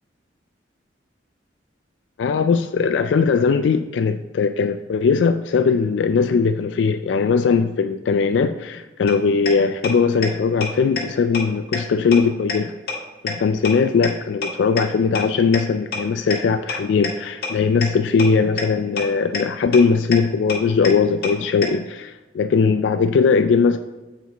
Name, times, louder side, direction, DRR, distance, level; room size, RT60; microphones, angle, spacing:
voice 1, 2.2-12.7 13.2-23.8, left 5 dB, 70° left, 8 dB, 0.3 m, -19 dB
sound 1, 9.1-9.2 9.5-9.6 9.8-9.9 10.2-10.3 10.6-10.7 11.0-11.1 11.3-11.4 11.7-11.8 12.1-12.2 12.5-12.6 12.9-13.0 13.3-13.4 13.6-13.7 14.0-14.1 14.4-14.5 14.8-14.9 15.1-15.2 15.5-15.6 15.9-16.0 16.3-16.4 16.7-16.8 17.0-17.1 17.4-17.5 17.8-17.9 18.2-18.3 18.6-18.7 19.0-19.1 19.3-19.4 19.7-19.8 20.1-20.2 20.5-20.6 20.8-20.9 21.2-21.3 21.6-21.7, left 5 dB, 55° left, 1.4 m, -25 dB
8.0 x 4.6 x 4.0 m, 1.1 s
head